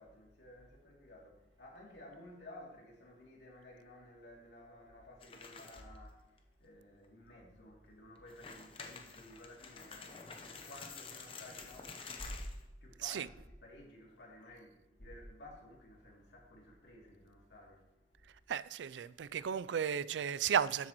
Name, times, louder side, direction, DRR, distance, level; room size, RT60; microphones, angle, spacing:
voice 1, 0.0-13.3 13.6-18.3, left 1 dB, 80° left, 2.8 m, -53 dB
sound 1, 5.2-6.0 6.4-6.5 7.0-7.1 8.2-12.6, left 4 dB, 30° left, 0.8 m, -49 dB
voice 2, 18.5-20.9, right 8 dB, 85° right, 0.4 m, -34 dB
12.5 x 7.9 x 3.0 m
head